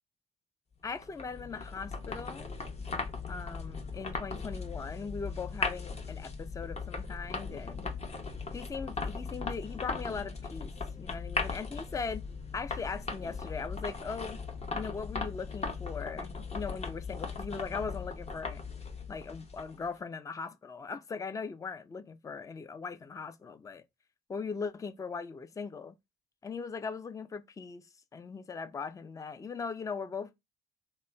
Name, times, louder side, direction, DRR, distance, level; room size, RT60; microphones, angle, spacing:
voice 1, 0.8-2.6 3.3-7.9 8.5-10.7 11.0-12.2 12.5-14.4 14.7-18.6 19.1-23.8 24.3-26.0 26.4-27.9 28.1-30.3, left 5 dB, 15° left, 0.4 m, -39 dB
sound 1, 0.9-19.9, left 4 dB, 30° left, 0.8 m, -38 dB
3.0 x 2.0 x 2.2 m
hypercardioid pair, 55°, 20 cm